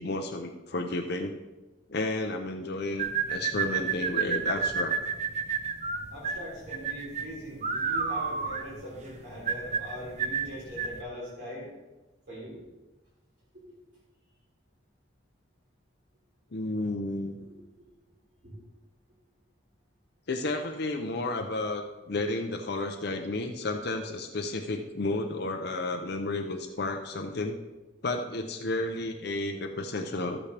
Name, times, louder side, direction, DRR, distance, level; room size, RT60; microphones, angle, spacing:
voice 1, 0.0-1.3 1.9-5.0 16.5-17.5 20.3-27.6 28.0-30.4, left 2 dB, 55° left, 3 dB, 0.6 m, -32 dB
sound 1, 3.0-11.0, right 6 dB, 35° right, 0.7 m, -30 dB
voice 2, 6.1-11.7 12.3-12.7 17.5-17.6 18.4-18.5, equal, 55° right, -7 dB, 3.5 m, -41 dB
13.0 x 8.3 x 3.4 m, 1.1 s
head